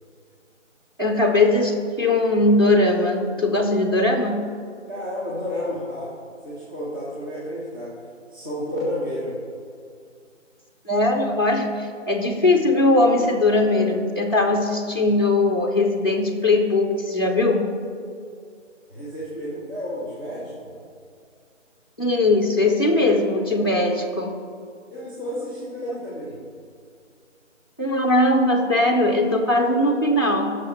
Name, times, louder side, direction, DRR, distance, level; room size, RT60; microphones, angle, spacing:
voice 1, 1.0-4.5 10.9-17.7 22.0-24.3 27.8-30.6, left 2 dB, 20° left, -1 dB, 0.8 m, -20 dB
voice 2, 4.9-6.1 6.4-7.9 8.3-9.4 18.9-20.8 24.9-26.4, left 1 dB, 15° right, -11 dB, 1.5 m, -31 dB
16.0 x 6.5 x 4.4 m, 2.2 s
figure-of-eight pair, 165°, 38 cm